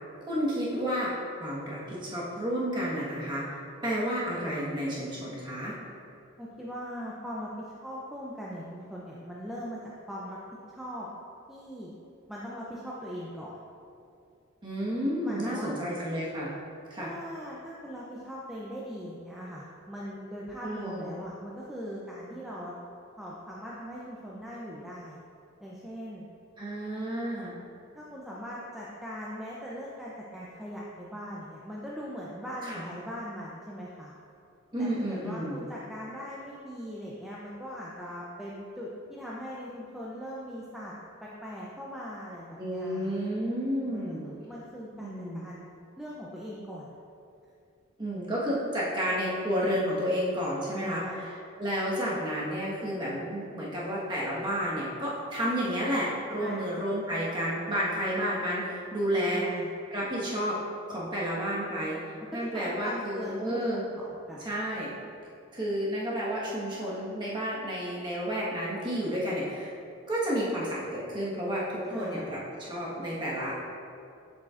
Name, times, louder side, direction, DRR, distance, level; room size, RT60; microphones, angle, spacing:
voice 1, 0.3-1.1 1.4-3.4 3.8-5.7 14.6-16.5 16.9-17.1 20.6-21.2 26.6-27.5 32.6-32.8 34.7-35.6 42.6-44.2 45.0-45.4 48.0-59.4 59.9-60.6 60.9-62.0 62.3-63.8 64.4-64.9 65.5-69.7 70.1-73.5, equal, 20° right, -7 dB, 1.4 m, -31 dB
voice 2, 6.4-7.5 7.8-10.4 10.7-11.1 11.5-12.0 12.3-13.6 15.2-15.8 17.0-22.7 23.2-25.2 25.6-26.3 27.9-34.1 34.8-40.9 41.2-43.2 43.9-45.7 46.0-46.9 50.7-51.2 56.4-56.7 59.1-59.7 62.3-64.5 71.9-72.3, equal, ahead, -6 dB, 0.5 m, -40 dB
7.5 x 7.3 x 2.5 m, 2.5 s
head